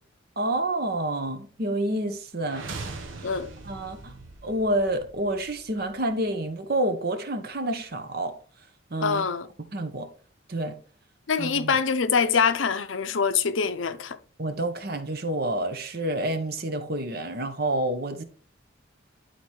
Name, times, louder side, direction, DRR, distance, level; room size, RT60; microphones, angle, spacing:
voice 1, 0.4-2.7 3.2-3.3 3.6-4.1 4.4-8.4 8.9-9.2 9.7-10.1 10.5-10.8 11.4-11.7 14.4-18.2, right 1 dB, 50° right, 1.0 m, -28 dB
sound 1, 2.4-6.4, right 3 dB, 80° right, 1.1 m, -41 dB
voice 2, 9.0-9.5 11.3-14.2, left 6 dB, 75° left, 0.6 m, -24 dB
11.0 x 4.3 x 3.1 m
head